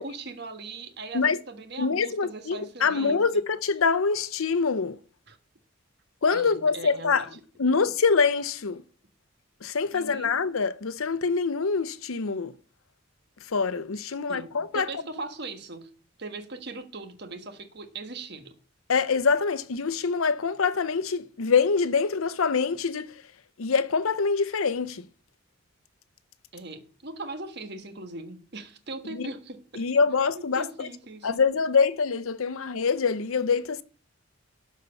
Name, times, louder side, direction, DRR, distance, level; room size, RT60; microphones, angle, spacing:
voice 1, 0.0-3.4 5.3-5.4 6.3-7.7 9.9-10.4 14.1-14.5 14.7-15.9 16.2-18.6 26.5-29.9 30.3-31.4, right 3 dB, 55° right, 1.4 m, -40 dB
voice 2, 1.8-5.0 6.2-7.2 7.6-8.8 9.6-12.5 13.5-14.9 18.9-23.1 23.6-25.0 29.2-29.3 29.8-30.9 31.2-33.8, left 5 dB, 90° left, 0.7 m, -25 dB
12.0 x 4.6 x 6.9 m
head